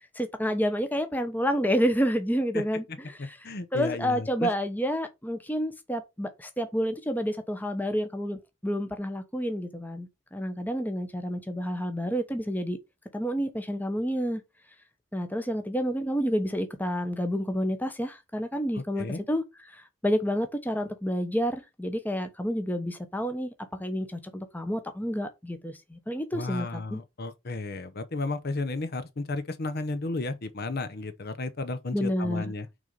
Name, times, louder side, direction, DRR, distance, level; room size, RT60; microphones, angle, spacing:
voice 1, 0.1-3.4 3.7-12.8 13.1-14.4 15.1-19.4 19.7-23.5 23.8-27.0 31.9-32.4, equal, 10° left, 0.9 m, -29 dB
voice 2, 3.2-4.5 18.7-19.2 26.3-32.7, left 2 dB, 45° left, 0.7 m, -33 dB
6.1 x 3.9 x 5.2 m
head